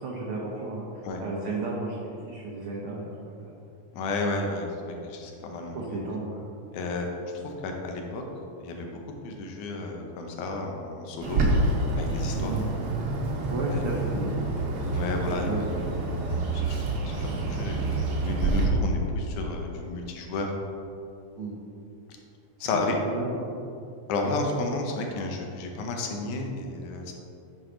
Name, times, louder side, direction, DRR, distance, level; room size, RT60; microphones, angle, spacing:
voice 1, 0.0-3.4 5.7-6.5 12.3-12.7 13.5-14.4 15.2-15.6 17.5-17.6 21.4-21.6 22.9-23.5, right 2 dB, 90° right, -3 dB, 1.2 m, -33 dB
voice 2, 3.9-5.8 6.7-7.1 7.4-8.2 8.6-8.9 9.2-11.4 12.0-12.5 13.7-13.8 14.9-15.5 16.5-17.8 18.2-20.5 22.6-22.9 24.1-27.2, left 3 dB, 90° left, 2 dB, 2.3 m, -32 dB
Bird, 11.2-18.7, right 2 dB, 65° right, 1.3 m, -27 dB
8.8 x 4.5 x 3.8 m, 2.7 s
omnidirectional pair, 3.4 m